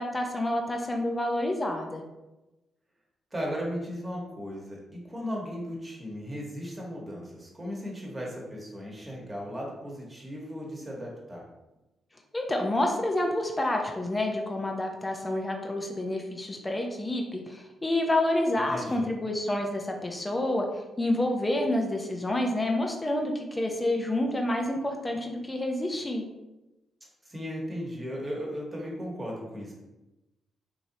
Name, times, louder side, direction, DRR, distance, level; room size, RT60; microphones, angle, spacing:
voice 1, 0.0-2.0 12.3-20.6 21.0-26.2, left 1 dB, 20° left, 2 dB, 0.5 m, -28 dB
voice 2, 3.3-11.4 18.7-19.1 27.2-29.7, equal, 25° right, -3 dB, 1.1 m, -36 dB
3.1 x 2.7 x 2.7 m, 1.0 s
supercardioid pair, 60°, 0 cm